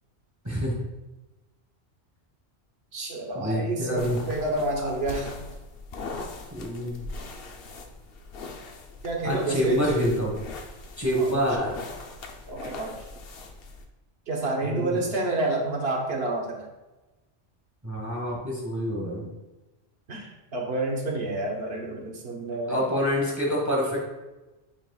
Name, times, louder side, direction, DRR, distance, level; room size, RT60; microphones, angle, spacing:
voice 1, 0.4-0.8 3.3-4.2 4.8-4.9 6.5-7.0 9.2-10.4 11.0-11.8 14.6-15.0 17.8-19.3 22.7-24.1, equal, 15° right, -3 dB, 1.2 m, -27 dB
voice 2, 2.9-5.4 9.0-9.9 11.2-11.4 12.5-13.0 14.3-16.7 20.1-22.8, right 2 dB, 70° right, 1 dB, 1.3 m, -29 dB
sound 1, 4.0-13.9, left 3 dB, 65° left, 0.9 m, -41 dB
8.7 x 5.0 x 2.3 m, 1.1 s
omnidirectional pair, 1.1 m